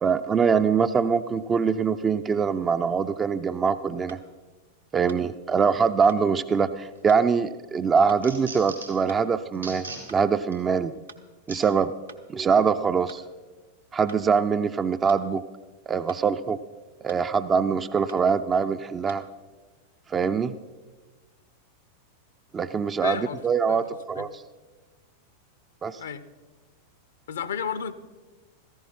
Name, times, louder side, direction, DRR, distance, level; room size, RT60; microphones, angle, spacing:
voice 1, 0.0-4.2 4.9-9.9 10.1-11.0 11.5-11.9 12.3-13.2 13.9-15.4 15.9-16.6 17.0-19.2 20.1-20.5 22.5-24.4 25.8-26.0, right 6 dB, 20° right, 11 dB, 0.4 m, -23 dB
sound 1, 4.1-4.3 5.1-5.3 6.1-6.3 7.1-7.3 8.1-8.3 9.1-9.3 10.1-10.3 11.1-11.3 12.1-12.3 13.1-13.3 14.1-14.2 15.1-15.3 16.1-16.3 17.1-17.3 18.1-18.2 19.1-19.2, right 4 dB, 70° right, 1.0 m, -47 dB
sound 2, 6.9-7.4 7.8-9.0 9.5-10.0 10.5-10.6 11.5-11.6 12.4-12.5, right 3 dB, 90° right, 3.8 m, -39 dB
voice 2, 23.0-23.4 23.7-24.3 26.0-26.3 27.3-27.9, left 7 dB, 65° left, 14 dB, 0.7 m, -33 dB
16.0 x 14.5 x 4.4 m, 1.3 s
figure-of-eight pair, 90°, 0 cm